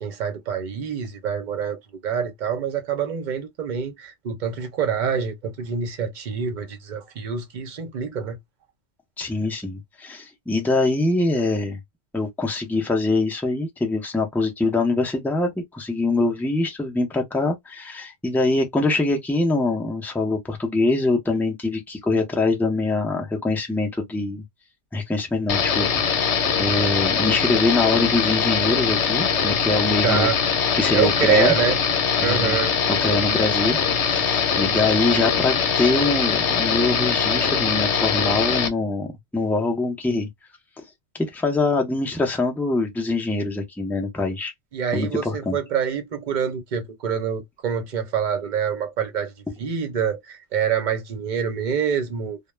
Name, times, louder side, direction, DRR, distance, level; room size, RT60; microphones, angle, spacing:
voice 1, 0.0-8.4 30.0-30.4 30.9-31.8 32.2-32.7 44.7-49.3 49.6-52.4, right 7 dB, 50° right, 0.7 m, -26 dB
voice 2, 9.2-11.8 12.1-24.4 24.9-25.9 26.1-30.3 30.7-31.5 32.2-32.6 32.9-39.1 39.3-40.3 40.8-40.9 41.1-44.5 44.9-45.6, left 2 dB, 5° left, 0.4 m, -24 dB
sound 1, 25.5-38.7, left 6 dB, 85° left, 1.0 m, -22 dB
2.2 x 2.1 x 3.1 m
omnidirectional pair, 1.2 m